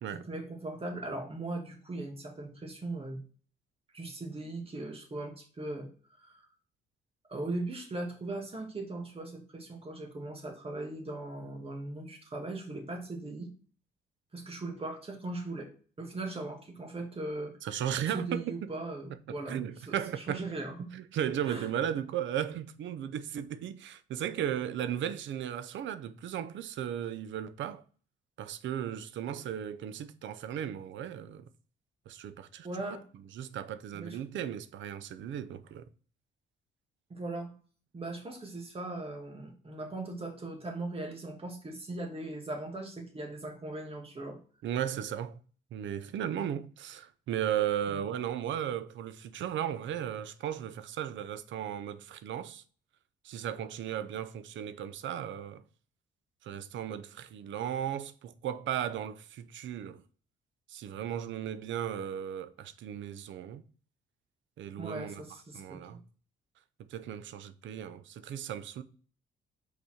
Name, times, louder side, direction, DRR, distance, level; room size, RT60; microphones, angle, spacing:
voice 1, 0.2-3.2 3.9-6.5 7.3-13.5 14.3-15.7 16.0-17.6 18.1-19.6 19.9-20.9 21.5-21.7 32.6-33.0 33.9-34.2 37.1-37.5 37.9-44.4 47.9-48.0 64.8-66.0, right 2 dB, 30° right, 2.0 m, -39 dB
voice 2, 17.6-18.5 19.5-20.4 20.9-27.8 28.4-31.4 32.1-32.7 33.3-35.8 44.6-45.4 45.7-52.6 53.2-55.6 56.4-60.0 60.7-63.6 64.6-65.2 65.5-66.0 66.9-68.8, right 10 dB, 70° right, 0.6 m, -36 dB
5.7 x 4.1 x 4.3 m
cardioid pair, 90°, 20 cm